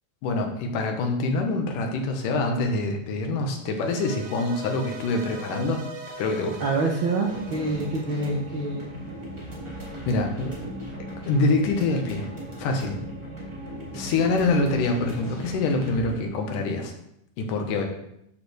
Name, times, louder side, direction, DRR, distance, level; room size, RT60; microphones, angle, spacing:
voice 1, 0.2-5.8 6.2-6.6 10.1-10.5 11.2-12.2 12.6-13.0 13.9-16.9 17.4-17.8, left 3 dB, 80° left, 3 dB, 2.7 m, -25 dB
sound 1, 3.7-9.0, right 4 dB, 70° right, 2.3 m, -41 dB
voice 2, 6.6-8.9, right 3 dB, 90° right, 0 dB, 1.1 m, -26 dB
sound 2, 7.2-16.2, right 1 dB, 15° right, 1.2 m, -37 dB
12.0 x 6.4 x 3.3 m, 0.79 s
omnidirectional pair, 3.7 m